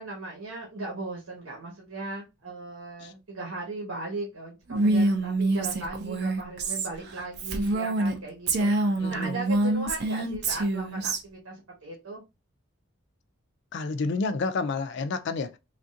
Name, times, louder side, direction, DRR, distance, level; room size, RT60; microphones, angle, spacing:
voice 1, 0.0-12.2, right 2 dB, 90° right, 1.1 m, -37 dB
Female speech woman speaking, 4.7-8.2 8.5-11.2, right 2 dB, 50° right, 0.5 m, -26 dB
voice 2, 9.0-9.3 13.7-15.5, left 4 dB, 55° left, 0.3 m, -29 dB
3.4 x 2.4 x 2.6 m
head